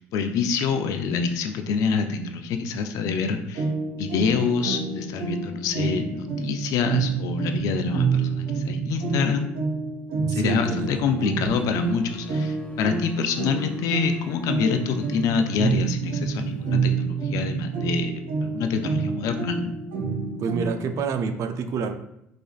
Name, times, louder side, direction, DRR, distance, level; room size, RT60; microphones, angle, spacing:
voice 1, 0.0-3.7 4.0-9.5 10.3-18.1 18.4-19.7, left 5 dB, 70° left, 7 dB, 0.4 m, -26 dB
sound 1, 3.5-21.0, right 5 dB, 80° right, 1.2 m, -28 dB
voice 2, 10.3-11.2 20.4-21.9, right 5 dB, 55° right, 8 dB, 0.4 m, -28 dB
sound 2, 11.4-16.8, equal, 20° left, 1.1 m, -48 dB
4.9 x 2.4 x 2.4 m, 0.79 s
supercardioid pair, 75°, 6 cm